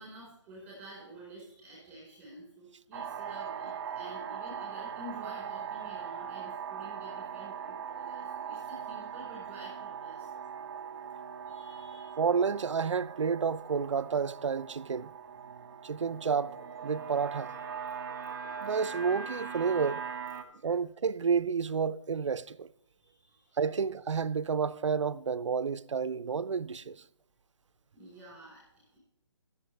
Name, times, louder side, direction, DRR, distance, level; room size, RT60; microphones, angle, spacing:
voice 1, 0.0-10.3 10.7-10.8 11.5-12.2 23.0-23.6 27.9-29.0, right 1 dB, 10° right, 4.2 m, -50 dB
sound 1, 2.9-20.4, right 7 dB, 35° right, 1.4 m, -40 dB
voice 2, 12.2-15.1 15.8-16.6 16.8-17.5 18.6-20.0 20.6-22.7 23.6-27.0, right 6 dB, 75° right, 0.6 m, -30 dB
20.5 x 7.2 x 3.2 m
hypercardioid pair, 155°, 16 cm